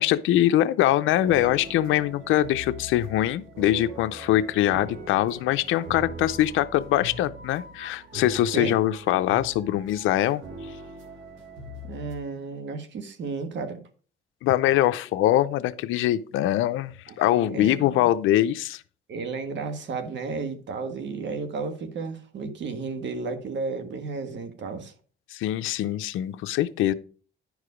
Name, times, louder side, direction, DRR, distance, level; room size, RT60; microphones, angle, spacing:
voice 1, 0.0-10.7 14.4-18.8 25.3-26.9, left 13 dB, 90° left, 0.6 m, -23 dB
sound 1, 1.1-12.1, right 1 dB, 85° right, 2.0 m, -41 dB
voice 2, 11.8-13.8 17.1-18.1 19.1-24.9, right 4 dB, 65° right, 1.6 m, -33 dB
10.0 x 4.8 x 5.0 m
cardioid pair, 90°, 20 cm